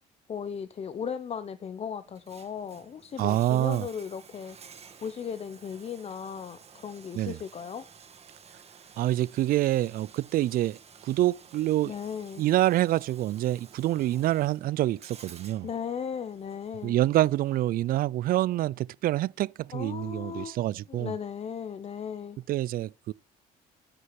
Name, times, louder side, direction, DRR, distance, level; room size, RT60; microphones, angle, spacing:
voice 1, 0.3-4.6 5.0-7.9 11.8-12.4 15.6-17.0 19.7-20.6 20.9-22.4, left 7 dB, 40° left, 0.8 m, -36 dB
Bathtub (filling or washing), 2.0-18.0, right 6 dB, 40° right, 2.2 m, -53 dB
voice 2, 3.2-3.9 7.1-7.4 9.0-10.8 11.0-11.9 12.4-15.7 16.8-21.1 22.5-23.1, right 14 dB, 60° right, 0.4 m, -26 dB
11.0 x 6.3 x 5.9 m
cardioid pair, 110°, 17 cm